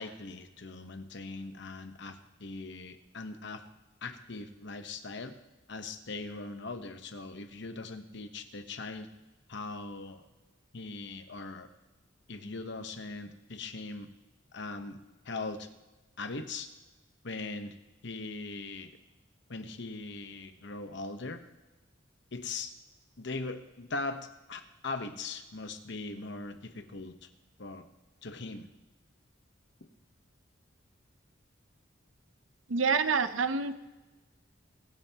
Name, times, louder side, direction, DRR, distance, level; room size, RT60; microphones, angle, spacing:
voice 1, 0.0-3.6 4.0-5.4 5.7-9.1 9.5-10.2 10.7-11.7 12.3-14.1 14.5-15.0 15.2-15.7 16.2-16.7 17.2-17.8 18.0-18.9 19.5-21.4 22.3-22.7 23.2-27.3 27.6-27.9 28.2-28.7, left 3 dB, 65° left, 8 dB, 1.1 m, -40 dB
voice 2, 32.7-33.7, right 5 dB, 85° right, 11 dB, 0.8 m, -27 dB
24.0 x 9.2 x 3.0 m, 1.1 s
head